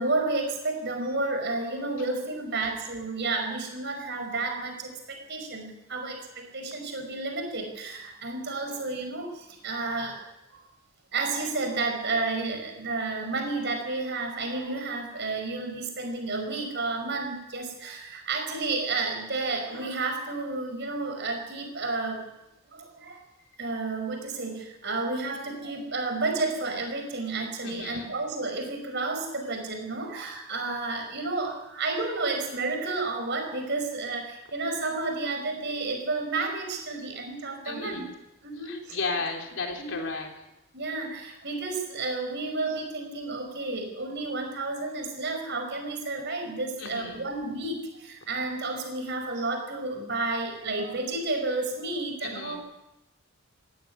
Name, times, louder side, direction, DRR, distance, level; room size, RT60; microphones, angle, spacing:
voice 1, 0.0-10.2 10.5-10.6 11.1-22.3 22.7-23.2 23.6-38.0 38.4-39.0 39.8-40.0 40.7-52.6, right 3 dB, 55° right, 4 dB, 5.6 m, -31 dB
voice 2, 27.6-28.2 37.6-38.1 38.6-40.3 46.8-47.3 52.2-52.6, left 3 dB, 60° left, 2 dB, 3.9 m, -34 dB
17.0 x 16.0 x 9.8 m, 0.93 s
head